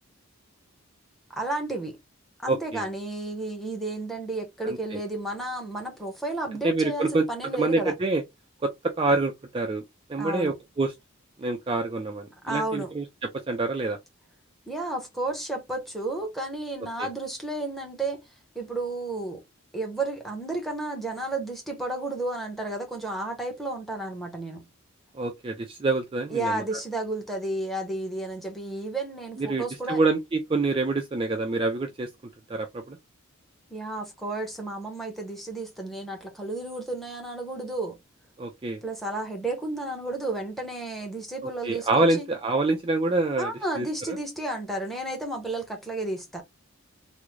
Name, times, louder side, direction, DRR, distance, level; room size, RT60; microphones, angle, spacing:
voice 1, 1.4-2.0 2.4-7.9 10.2-10.5 12.4-12.9 14.7-18.2 18.5-19.4 19.7-24.6 26.3-30.0 33.7-38.0 38.8-42.2 43.4-46.4, right 2 dB, ahead, 0.8 m, -32 dB
voice 2, 2.5-2.9 4.6-5.0 6.6-7.2 7.5-8.2 8.6-8.7 9.0-9.8 10.1-10.9 11.4-14.0 17.0-17.1 25.1-26.6 29.4-32.1 32.5-33.0 38.4-38.8 41.4-43.5 43.8-44.2, right 3 dB, 25° right, 0.3 m, -26 dB
3.6 x 2.0 x 3.1 m
head